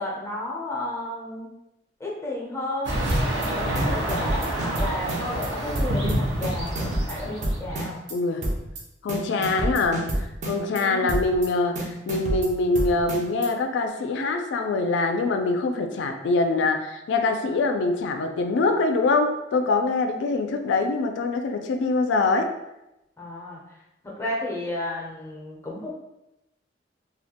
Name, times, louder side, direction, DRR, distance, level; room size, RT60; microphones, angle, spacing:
voice 1, 0.0-1.5 2.0-3.0 3.3-8.0 10.7-11.1 23.2-23.6 24.0-25.9, left 1 dB, 15° left, -4 dB, 0.5 m, -32 dB
sound 1, 2.8-7.9, right 1 dB, 80° right, 0.7 m, -28 dB
sound 2, 3.1-3.5 3.7-5.5 5.7-6.1 6.4-8.1 8.4-8.8 9.1-10.8 11.1-11.5 11.7-13.5, right 1 dB, 40° right, 0.4 m, -28 dB
voice 2, 8.1-8.4 9.0-10.1 10.4-22.5, left 3 dB, 80° left, 5 dB, 0.3 m, -24 dB
2.3 x 2.1 x 2.8 m, 0.90 s
head